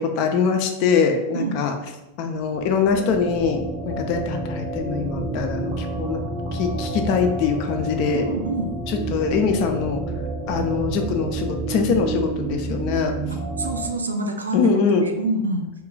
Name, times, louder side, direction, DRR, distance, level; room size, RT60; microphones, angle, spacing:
voice 1, 0.0-1.8 2.2-6.2 6.5-8.2 8.9-10.0 10.5-13.1 14.5-15.0, left 5 dB, 45° left, 5 dB, 0.4 m, -23 dB
sound 1, 2.4-13.9, right 2 dB, 20° right, 0.6 m, -29 dB
voice 2, 8.1-8.7 13.6-15.7, right 2 dB, 75° right, 4 dB, 0.3 m, -27 dB
2.3 x 2.2 x 3.8 m, 0.98 s
figure-of-eight pair, 90°, 0 cm